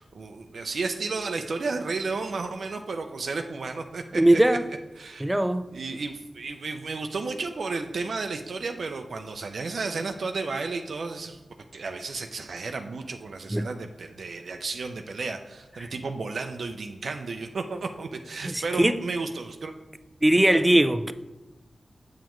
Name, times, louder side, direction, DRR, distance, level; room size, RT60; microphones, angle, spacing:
voice 1, 0.0-4.4 5.0-5.3 5.7-11.4 11.7-19.7, right 4 dB, 75° right, 0.5 m, -33 dB
voice 2, 4.1-4.6 5.2-5.7 13.5-13.7 15.8-15.9 18.4-19.0 20.2-21.1, right 1 dB, 15° right, 0.4 m, -21 dB
7.4 x 7.1 x 3.0 m
wide cardioid pair, 75°, 0 cm